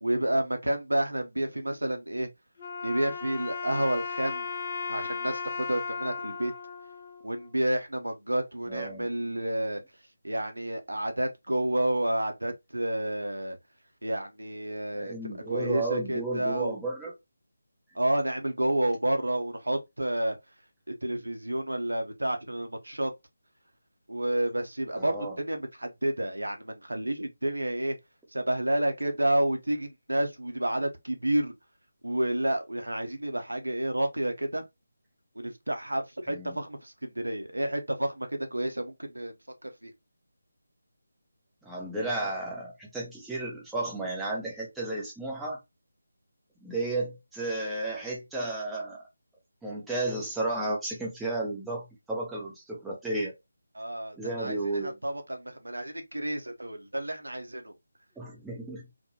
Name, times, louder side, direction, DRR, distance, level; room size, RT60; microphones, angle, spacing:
voice 1, 0.0-2.3 2.8-4.5 4.9-6.5 7.2-9.8 10.2-13.6 14.0-16.8 17.9-20.4 20.9-23.1 24.1-28.0 28.3-31.5 32.0-34.6 35.4-39.3 39.6-39.9 53.7-57.7, right 1 dB, 75° right, 0.6 m, -30 dB
Wind instrument woodwind instrument, 2.6-7.8, left 5 dB, 40° left, 0.5 m, -36 dB
voice 2, 8.7-9.0 14.9-17.1 25.0-25.4 36.3-36.6 41.6-45.6 46.6-49.0 49.6-53.3 54.2-54.9 58.2-58.8, right 2 dB, 5° right, 0.6 m, -33 dB
2.3 x 2.0 x 2.8 m
figure-of-eight pair, 155°, 0 cm